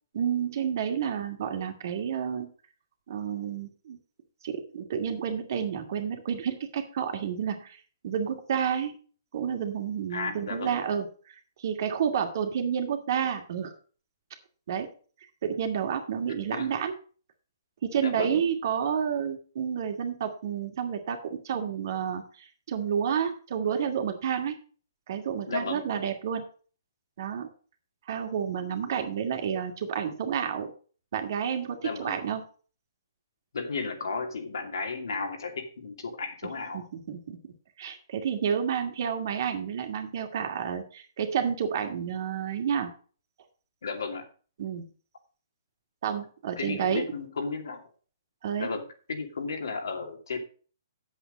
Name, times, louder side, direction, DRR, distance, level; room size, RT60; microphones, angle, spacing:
voice 1, 0.1-2.5 3.1-4.0 4.4-7.8 8.0-9.0 9.3-13.7 14.7-14.9 15.4-17.0 17.8-24.6 25.1-26.4 27.2-27.5 28.1-30.7 31.1-32.4 36.7-37.4 37.8-42.9 44.6-44.8 46.0-47.1 48.4-48.7, right 8 dB, 55° right, 5 dB, 2.2 m, -30 dB
voice 2, 10.1-10.8 16.5-16.7 18.0-18.4 25.5-25.8 31.8-32.2 33.5-36.8 43.8-44.2 46.6-47.8 48.6-48.8 49.1-50.4, left 4 dB, 80° left, 4 dB, 2.6 m, -34 dB
8.4 x 7.9 x 5.2 m, 0.39 s
hypercardioid pair, 145°, 2 cm